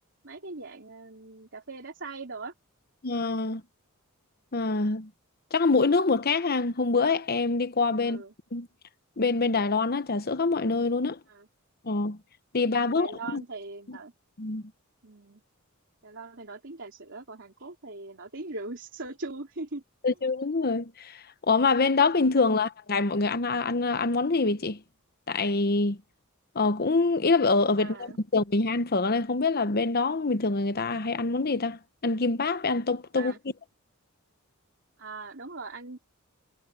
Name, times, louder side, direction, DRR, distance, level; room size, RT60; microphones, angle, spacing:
voice 1, 0.2-2.5 8.0-8.3 11.3-11.5 12.9-14.1 15.0-15.4 16.0-19.8 27.8-28.2 33.1-33.4 35.0-36.0, right 3 dB, 55° right, 3.7 m, -40 dB
voice 2, 3.0-3.6 4.5-5.1 5.5-8.2 8.5-8.7 9.2-11.2 11.8-12.2 12.5-13.4 13.9-14.0 14.4-14.6 20.0-24.8 25.3-26.0 26.5-33.3, left 3 dB, 45° left, 0.9 m, -25 dB
head